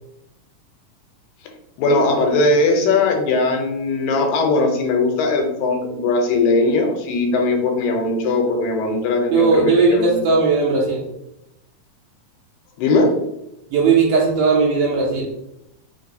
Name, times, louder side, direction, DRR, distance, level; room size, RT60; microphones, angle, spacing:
voice 1, 1.8-10.2 12.8-13.1, left 3 dB, 85° left, 3 dB, 2.3 m, -19 dB
voice 2, 9.3-11.0 13.7-15.3, right 4 dB, 80° right, -2 dB, 2.1 m, -17 dB
5.2 x 2.6 x 2.6 m, 0.85 s
omnidirectional pair, 4.0 m